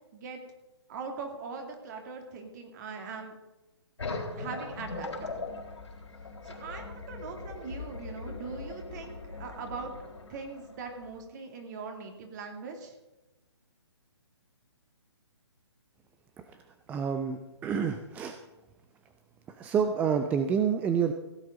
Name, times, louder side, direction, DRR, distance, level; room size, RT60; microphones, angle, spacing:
voice 1, 0.9-3.3 4.4-5.4 6.4-9.9 10.3-13.0, right 4 dB, 40° right, 4 dB, 2.4 m, -41 dB
sound 1, 4.0-11.2, left 3 dB, 80° left, 3.7 m, -40 dB
voice 2, 16.9-18.3 19.6-21.1, right 7 dB, 10° right, 7 dB, 0.4 m, -28 dB
16.0 x 8.5 x 5.1 m, 1.0 s
figure-of-eight pair, 140°, 15 cm